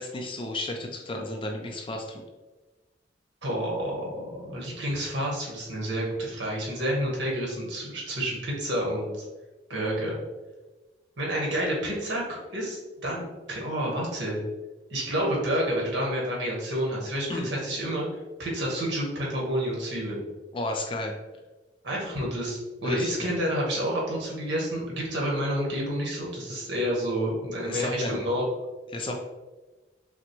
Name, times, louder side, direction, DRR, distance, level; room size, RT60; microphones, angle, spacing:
voice 1, 0.0-2.2 17.3-17.5 20.5-21.1 22.8-23.3 27.6-28.2 28.9-29.2, left 1 dB, 30° left, 2 dB, 0.4 m, -33 dB
voice 2, 3.4-9.1 9.7-10.2 11.2-14.4 14.9-18.1 18.4-20.2 21.8-28.4, equal, 80° right, -3 dB, 1.4 m, -29 dB
5.9 x 2.1 x 3.0 m, 1.2 s
head